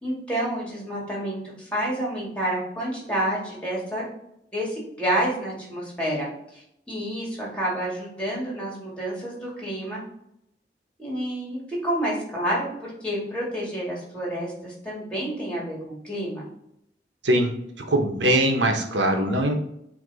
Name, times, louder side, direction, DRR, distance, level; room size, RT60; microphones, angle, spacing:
voice 1, 0.0-4.0 4.5-6.3 6.5-10.0 11.0-16.5, right 1 dB, 5° left, -4 dB, 2.1 m, -29 dB
voice 2, 17.2-17.6 17.9-19.5, right 1 dB, 85° right, 3 dB, 1.1 m, -21 dB
8.0 x 2.9 x 4.1 m, 0.78 s
head